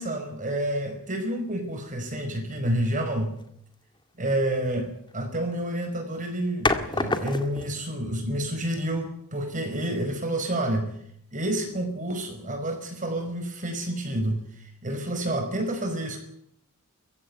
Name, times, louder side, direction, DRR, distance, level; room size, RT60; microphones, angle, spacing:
voice 1, 0.0-3.3 4.2-10.9 11.3-16.2, right 1 dB, 35° right, 5 dB, 5.3 m, -29 dB
sound 1, 2.6-2.9 5.1-5.5 6.6-7.8, left 2 dB, 20° left, 2.0 m, -28 dB
23.0 x 15.5 x 9.6 m, 0.72 s
head